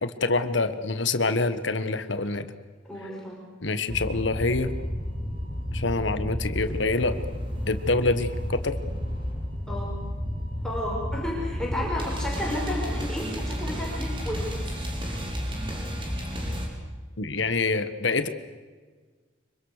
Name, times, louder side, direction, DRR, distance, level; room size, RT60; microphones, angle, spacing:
voice 1, 0.0-2.5 3.6-4.7 5.7-7.2 7.7-8.8 17.2-18.3, left 3 dB, 70° left, 11 dB, 1.4 m, -26 dB
voice 2, 2.8-3.4 9.7-9.9 10.6-14.5, left 1 dB, 5° left, -3 dB, 5.1 m, -32 dB
sound 1, 3.9-16.7, equal, 25° right, 4.1 m, -31 dB
25.0 x 24.0 x 6.6 m, 1.5 s
head